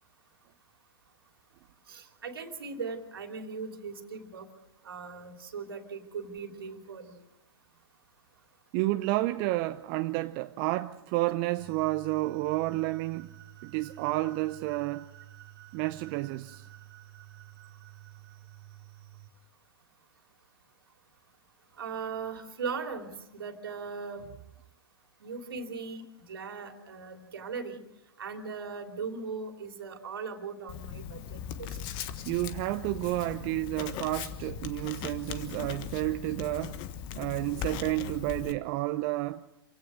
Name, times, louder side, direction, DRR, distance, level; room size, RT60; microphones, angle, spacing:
voice 1, 1.9-4.5 4.8-7.1 21.8-24.2 25.2-27.8 28.2-31.7, right 5 dB, 70° right, 3.0 m, -39 dB
voice 2, 8.7-13.3 13.6-15.1 15.7-16.7 32.3-36.8 37.2-39.4, right 18 dB, 40° right, 0.7 m, -30 dB
sound 1, 11.6-19.3, right 14 dB, 55° right, 3.1 m, -51 dB
Writing, 30.7-38.5, left 9 dB, 35° left, 1.5 m, -39 dB
27.5 x 16.5 x 6.3 m
figure-of-eight pair, 105°, 13 cm